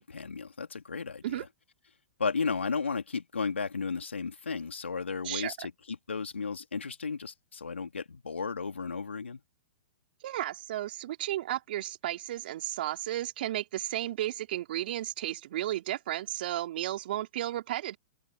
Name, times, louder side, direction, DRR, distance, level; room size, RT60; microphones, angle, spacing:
voice 1, 0.0-1.4 2.2-9.4, left 5 dB, 85° left, 3.5 m, -34 dB
voice 2, 10.2-18.0, right 13 dB, 55° right, 3.6 m, -33 dB
open air
figure-of-eight pair, 115°, 6 cm